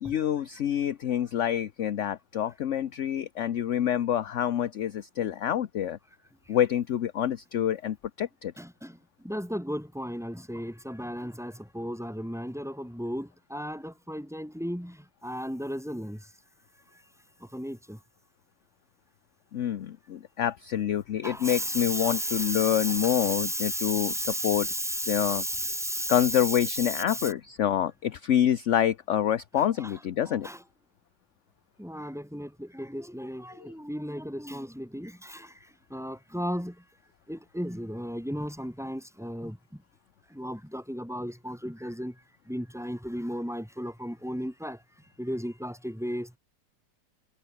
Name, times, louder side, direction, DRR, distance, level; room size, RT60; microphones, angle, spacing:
voice 1, 0.0-6.0 6.5-8.5 19.5-24.7 25.1-25.4 26.1-30.5, left 10 dB, 55° left, 0.9 m, -27 dB
voice 2, 8.6-9.0 9.2-16.3 17.4-18.0 21.2-27.3 29.5-30.0 30.2-30.6 31.8-35.6 35.9-36.8 37.3-39.8 40.3-42.2 42.5-44.8 45.2-46.4, equal, ahead, 5.4 m, -34 dB
omnidirectional pair, 2.0 m